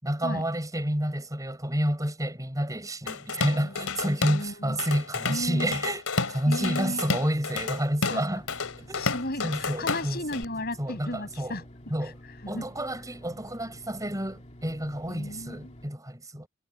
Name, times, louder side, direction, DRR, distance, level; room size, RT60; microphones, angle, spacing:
voice 1, 0.0-8.4 8.8-9.1 9.4-10.4 10.8-11.1 11.4-11.6 11.9-12.1 12.5-16.5, right 1 dB, 15° right, 5.7 m, -29 dB
Drum kit / Drum, 3.1-4.5 4.8-10.4, left 4 dB, 90° left, 3.4 m, -31 dB
voice 2, 3.5-4.8 5.3-5.7 6.5-7.0 8.1-8.2 9.0-12.1 12.4-12.7 15.1-15.7, left 1 dB, 50° left, 5.9 m, -35 dB
sound 1, 8.3-15.9, equal, 35° left, 2.6 m, -49 dB
head